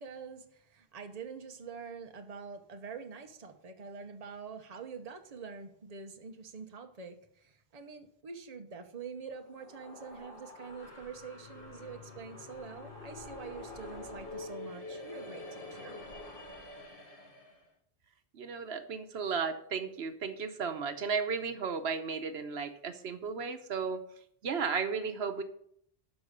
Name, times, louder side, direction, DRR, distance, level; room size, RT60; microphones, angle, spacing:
voice 1, 0.0-16.0, right 5 dB, 40° right, 5 dB, 1.0 m, -46 dB
sound 1, 9.3-17.6, left 2 dB, 60° left, 1.8 m, -46 dB
voice 2, 18.3-24.0 24.4-25.4, right 5 dB, 80° right, 8 dB, 1.1 m, -34 dB
12.5 x 4.8 x 6.7 m, 0.68 s
omnidirectional pair, 1.1 m